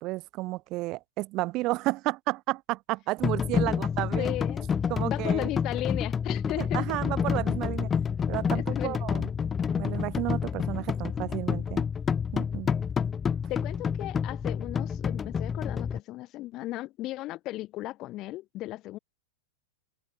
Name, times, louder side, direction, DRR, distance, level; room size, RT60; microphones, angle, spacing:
voice 1, 0.0-4.3 4.9-5.5 6.6-7.9 8.3-9.3 9.7-11.9 12.3-12.7, right 20 dB, 45° right, 0.7 m, -32 dB
sound 1, 3.2-16.0, left 7 dB, 20° left, 1.3 m, -29 dB
voice 2, 4.2-4.7 5.0-6.9 8.5-9.0 12.5-12.6 13.5-19.0, left 17 dB, 40° left, 4.8 m, -36 dB
hypercardioid pair, 105°, 0 cm